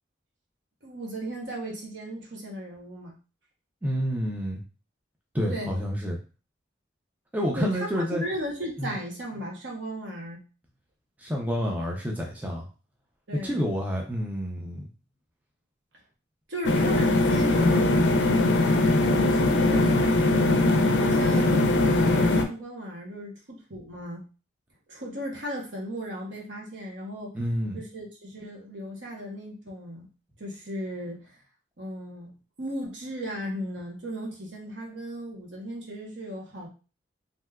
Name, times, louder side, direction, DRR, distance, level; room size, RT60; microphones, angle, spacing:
voice 1, 0.8-3.1 5.5-5.7 7.6-10.4 13.3-13.6 16.5-24.2 24.9-27.4 27.7-30.1 30.4-31.3 31.8-32.3 32.6-36.7, equal, 70° right, -1 dB, 0.9 m, -36 dB
voice 2, 3.8-4.6 5.3-6.2 7.3-8.2 8.8-9.0 11.2-12.7 13.4-14.9 27.3-27.8, equal, 10° right, -1 dB, 0.5 m, -29 dB
sound 1, 16.6-22.4, left 2 dB, 65° left, 0.4 m, -21 dB
3.4 x 2.7 x 2.3 m, 0.34 s
head